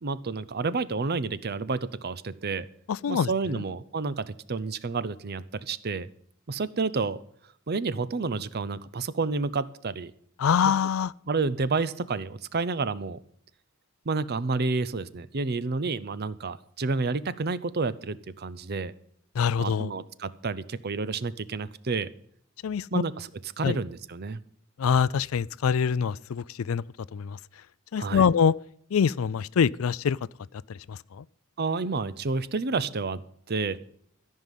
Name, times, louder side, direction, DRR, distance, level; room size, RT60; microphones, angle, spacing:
voice 1, 0.0-2.7 3.1-6.1 6.5-7.2 7.7-10.1 10.6-10.7 11.3-13.2 14.1-18.9 19.6-22.1 22.9-24.4 28.0-28.3 31.6-33.2 33.5-33.8, right 4 dB, 50° right, 0.7 m, -30 dB
voice 2, 2.9-3.3 10.4-11.1 19.4-19.9 22.6-23.0 23.6-23.8 24.8-26.8 27.1-27.4 27.9-28.5 28.9-30.2 30.9-31.2, left 7 dB, 85° left, 0.4 m, -24 dB
14.0 x 5.5 x 9.1 m
head